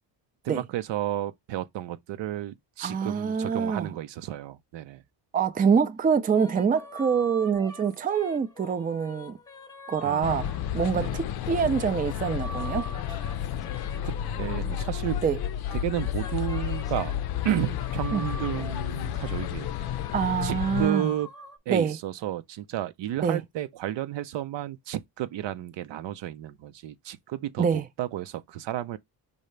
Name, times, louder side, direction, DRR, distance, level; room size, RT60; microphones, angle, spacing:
voice 1, 0.4-5.0 10.0-11.3 14.4-15.2 15.7-17.2 17.4-20.0 20.4-21.3 21.7-29.0, right 13 dB, 75° right, 0.7 m, -32 dB
voice 2, 2.8-3.9 5.3-9.4 9.9-12.9 15.2-15.4 18.1-18.3 20.1-21.1 21.7-22.0 23.2-23.4 27.6-27.9, right 6 dB, 20° right, 0.4 m, -25 dB
sound 1, 6.1-11.1 11.6-15.3 15.7-21.6, left 1 dB, 10° left, 0.8 m, -44 dB
sound 2, 10.2-20.9, left 11 dB, 60° left, 0.5 m, -31 dB
5.4 x 2.8 x 3.2 m
cardioid pair, 140°, 43 cm